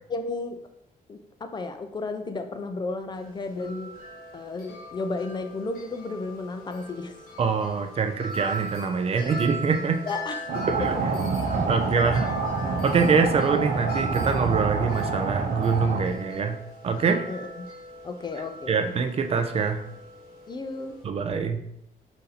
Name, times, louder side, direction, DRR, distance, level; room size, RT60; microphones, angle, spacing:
voice 1, 0.1-0.6 1.1-3.9 4.3-7.1 10.1-10.7 17.3-17.7 18.0-19.0 20.5-21.0, left 3 dB, 30° left, 7 dB, 0.3 m, -33 dB
Wind chime, 3.1-21.0, right 1 dB, 80° left, 1.1 m, -39 dB
voice 2, 7.4-10.0 10.8-10.9 11.6-12.3 12.8-16.6 16.8-17.3 18.7-19.8 21.0-21.6, right 5 dB, 40° right, 6 dB, 0.4 m, -24 dB
sound 1, 10.5-16.0, right 4 dB, 85° right, 0.7 m, -27 dB
4.1 x 2.6 x 4.0 m, 0.79 s
wide cardioid pair, 140°, 15 cm